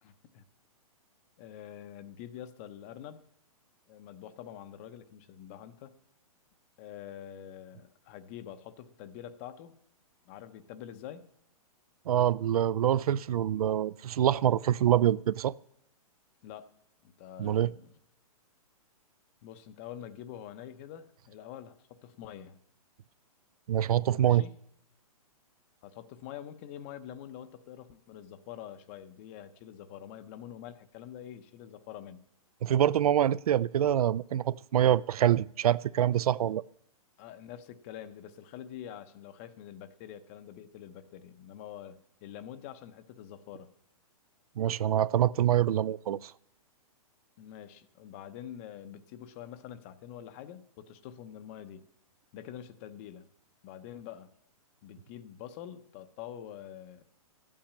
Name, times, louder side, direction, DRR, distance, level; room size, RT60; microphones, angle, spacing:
voice 1, 0.0-0.4 1.4-3.2 3.9-6.0 6.8-9.8 10.3-11.3 16.4-16.7 17.0-17.9 19.4-22.6 24.1-24.5 25.8-32.2 37.2-43.7 47.4-51.8 52.3-53.2 53.6-54.3 54.8-57.0, left 10 dB, 20° left, 0.6 m, -46 dB
voice 2, 12.1-15.5 17.4-17.7 23.7-24.4 32.6-36.6 44.6-46.3, right 11 dB, 75° right, 0.4 m, -25 dB
13.0 x 8.9 x 8.6 m
hypercardioid pair, 170°, 19 cm